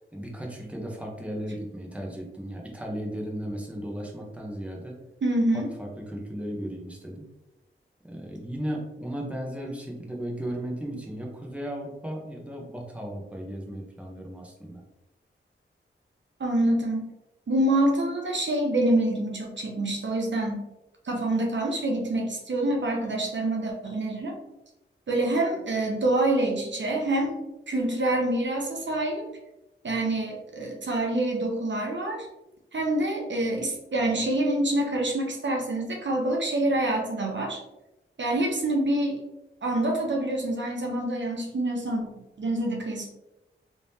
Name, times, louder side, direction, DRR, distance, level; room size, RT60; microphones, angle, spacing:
voice 1, 0.1-5.0 5.5-7.2 8.0-14.8, right 1 dB, 5° right, -1 dB, 0.9 m, -35 dB
voice 2, 5.2-5.7 9.7-9.8 16.4-17.1 17.5-20.6 21.0-24.3 25.1-27.3 27.7-29.2 29.8-32.3 32.7-37.6 38.2-39.2 39.6-42.1 42.4-43.1, right 1 dB, 60° right, 0 dB, 0.7 m, -26 dB
3.5 x 2.9 x 2.7 m, 0.95 s
wide cardioid pair, 70°, 21 cm